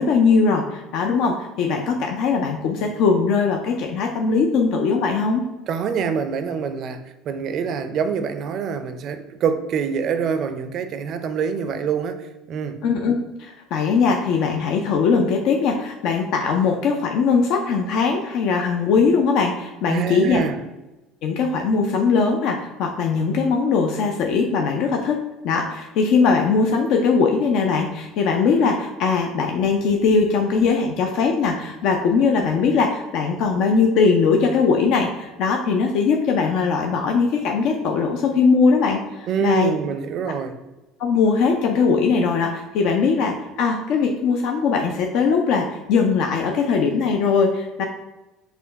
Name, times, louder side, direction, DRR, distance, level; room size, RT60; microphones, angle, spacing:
voice 1, 0.0-5.4 12.8-20.4 21.2-39.7 41.0-47.9, left 5 dB, 65° left, 2 dB, 0.4 m, -20 dB
voice 2, 5.7-7.0 7.3-12.8 19.9-20.6 39.3-40.5, right 6 dB, 55° right, 9 dB, 0.4 m, -25 dB
4.3 x 2.2 x 3.9 m, 1.0 s
hypercardioid pair, 75°, 0 cm